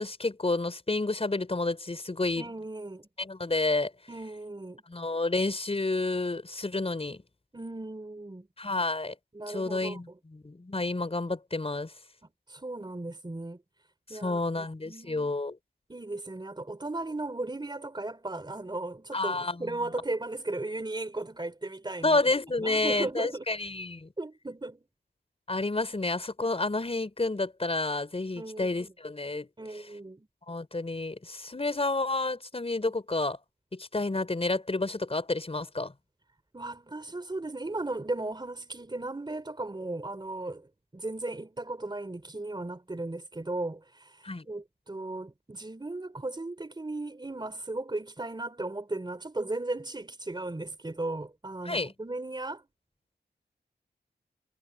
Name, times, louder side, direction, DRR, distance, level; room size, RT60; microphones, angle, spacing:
voice 1, 0.0-2.5 3.2-3.9 4.9-7.2 8.6-9.1 9.5-11.9 14.1-15.6 19.1-19.7 22.0-24.1 25.5-29.5 30.5-33.4 33.7-35.9 44.2-44.5 51.6-51.9, left 2 dB, 35° left, 4.9 m, -30 dB
voice 2, 2.4-3.1 4.1-4.8 7.5-8.5 9.3-10.2 12.5-13.6 14.1-15.3 15.9-22.2 22.6-23.4 24.2-24.8 28.3-28.9 29.6-30.3 36.5-52.6, right 2 dB, 25° right, 3.4 m, -36 dB
cardioid pair, 60°, 18 cm